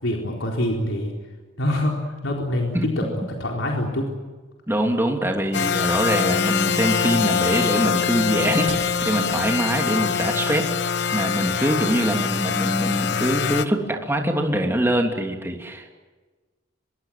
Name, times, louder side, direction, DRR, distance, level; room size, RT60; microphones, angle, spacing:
voice 1, 0.0-1.1 1.6-4.1, left 1 dB, 75° left, 0 dB, 4.2 m, -25 dB
voice 2, 4.7-15.9, right 1 dB, 10° right, 2 dB, 3.1 m, -23 dB
sound 1, 5.2-10.6, right 2 dB, 70° right, 6.7 m, -43 dB
sound 2, 5.5-13.7, left 6 dB, 60° left, 1.0 m, -24 dB
25.5 x 23.0 x 7.7 m, 1.3 s
head